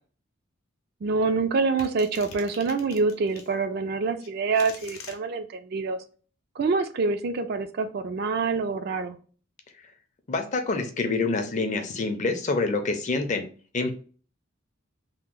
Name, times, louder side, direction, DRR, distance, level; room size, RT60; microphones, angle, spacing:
voice 1, 1.0-6.0 6.6-9.2, right 4 dB, 50° right, 8 dB, 0.3 m, -26 dB
sound 1, 1.8-3.5 4.2-5.2, left 5 dB, 80° left, 0.7 m, -44 dB
voice 2, 10.3-13.4 13.7-13.9, left 3 dB, 35° left, 6 dB, 0.4 m, -26 dB
2.8 x 2.0 x 3.6 m, 0.40 s
head